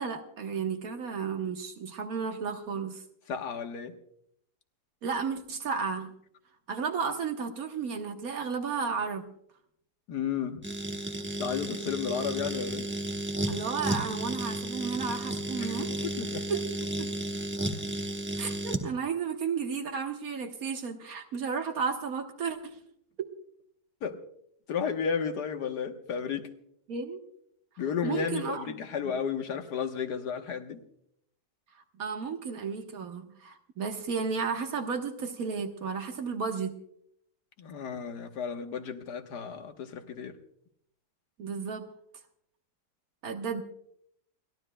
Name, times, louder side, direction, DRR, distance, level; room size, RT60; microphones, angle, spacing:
voice 1, 0.0-3.0 5.0-6.1 6.7-9.3 13.4-15.9 16.5-16.6 17.0-17.1 18.4-22.8 23.2-23.3 26.9-27.2 28.0-28.8 32.0-36.8 41.4-41.9 43.2-43.6, right 5 dB, 65° right, 1.6 m, -33 dB
voice 2, 3.3-3.9 10.1-10.7 11.4-12.9 15.6-16.4 24.0-24.2 24.7-26.5 27.8-30.8 37.6-40.4, left 7 dB, 90° left, 1.7 m, -33 dB
sound 1, 10.6-18.9, right 1 dB, 10° right, 0.9 m, -33 dB
30.0 x 12.5 x 2.2 m
omnidirectional pair, 1.7 m